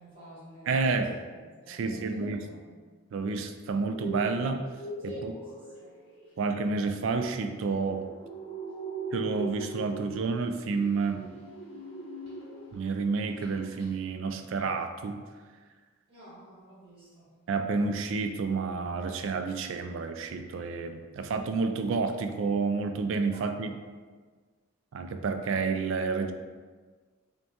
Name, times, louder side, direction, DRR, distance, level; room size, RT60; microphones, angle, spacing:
voice 1, 0.0-2.6 5.0-6.0 6.2-6.4 16.1-17.4 23.3-23.4, equal, 25° right, -9 dB, 1.4 m, -51 dB
voice 2, 0.7-1.1 1.7-2.4 3.1-4.7 5.0-5.3 6.4-8.1 9.1-11.3 12.7-15.2 17.5-23.7 24.9-26.3, right 4 dB, 60° right, 7 dB, 0.3 m, -30 dB
sound 1, 3.8-12.9 13.2-13.5 13.8-13.9, right 3 dB, 25° left, 1.0 m, -41 dB
5.2 x 2.2 x 2.9 m, 1.5 s
head